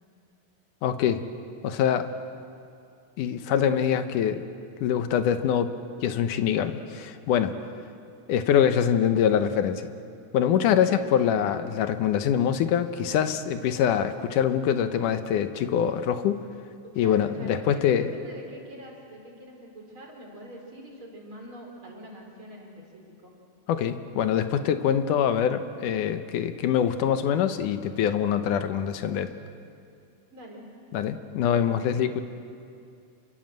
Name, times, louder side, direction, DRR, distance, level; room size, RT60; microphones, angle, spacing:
voice 1, 0.8-1.2 1.6-2.1 3.2-4.4 4.8-5.7 6.0-7.7 8.3-9.9 10.3-16.4 17.0-18.1 23.7-29.3 30.9-32.2, left 9 dB, 70° left, 9 dB, 2.4 m, -24 dB
voice 2, 16.8-23.3 30.3-30.6 32.0-32.2, right 1 dB, 35° right, 0 dB, 4.6 m, -44 dB
27.5 x 24.0 x 7.8 m, 2.5 s
omnidirectional pair, 3.9 m